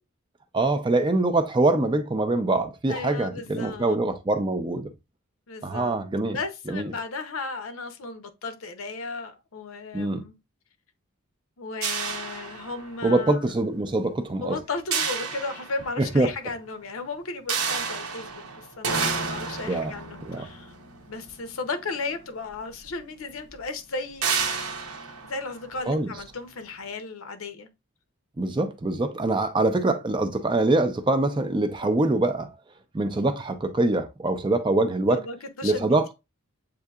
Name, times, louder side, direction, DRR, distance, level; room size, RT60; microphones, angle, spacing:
voice 1, 0.5-4.9 5.6-6.4 6.7-6.9 9.9-10.3 13.0-14.6 16.0-16.3 19.7-19.9 20.2-20.5 25.9-26.1 28.4-32.5 32.9-35.2 35.6-36.1, right 2 dB, 20° right, 0.4 m, -24 dB
voice 2, 2.9-4.0 5.5-6.0 6.3-10.4 11.6-13.4 14.4-20.7 21.1-24.7 25.2-27.7 35.1-36.0, left 3 dB, 70° left, 0.7 m, -35 dB
sound 1, 11.8-13.2 14.9-16.2 17.5-21.9 22.9-23.0 23.3-23.5 24.2-26.2, right 5 dB, 85° right, 0.9 m, -31 dB
7.6 x 2.7 x 2.3 m
head